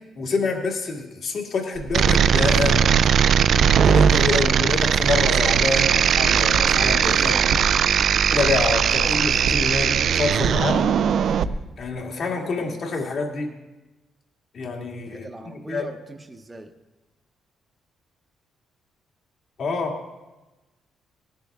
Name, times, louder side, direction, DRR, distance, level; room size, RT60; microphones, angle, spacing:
voice 1, 0.2-2.9 3.8-7.4 8.3-11.0 11.8-13.5 14.5-16.0 19.6-20.0, left 3 dB, 55° left, 1 dB, 2.0 m, -27 dB
sound 1, 1.9-11.4, right 8 dB, 65° right, 0.4 m, -19 dB
voice 2, 4.2-4.5 12.6-12.9 15.1-16.7, right 2 dB, 20° right, 5 dB, 0.8 m, -40 dB
sound 2, 8.7-11.5, right 3 dB, 85° right, 1.0 m, -31 dB
18.5 x 10.5 x 3.5 m, 1.1 s
cardioid pair, 90°, 0 cm